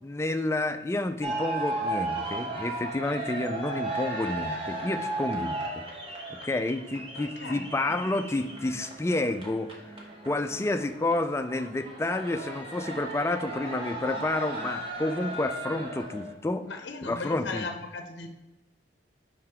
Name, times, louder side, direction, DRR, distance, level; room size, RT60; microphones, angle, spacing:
voice 1, 0.0-5.8 6.4-10.0 10.2-17.7, left 2 dB, 15° left, 8 dB, 0.3 m, -30 dB
sound 1, 1.2-16.3, right 2 dB, 30° right, 1.0 m, -35 dB
voice 2, 7.1-7.7 16.6-18.3, left 3 dB, 60° left, 4 dB, 0.6 m, -37 dB
5.5 x 3.9 x 4.3 m, 1.0 s
head